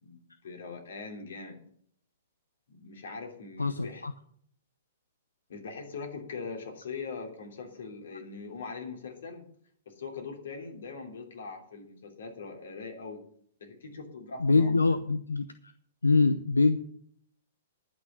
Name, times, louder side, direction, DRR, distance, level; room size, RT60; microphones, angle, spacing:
voice 1, 0.0-1.6 2.7-4.1 5.5-9.4 9.8-13.2 13.6-14.9, left 4 dB, 65° left, 3 dB, 3.0 m, -41 dB
voice 2, 3.6-4.1 14.4-15.5 16.0-16.8, left 3 dB, 90° left, 12 dB, 0.6 m, -24 dB
10.5 x 6.3 x 8.2 m, 0.63 s
figure-of-eight pair, 115°, 0 cm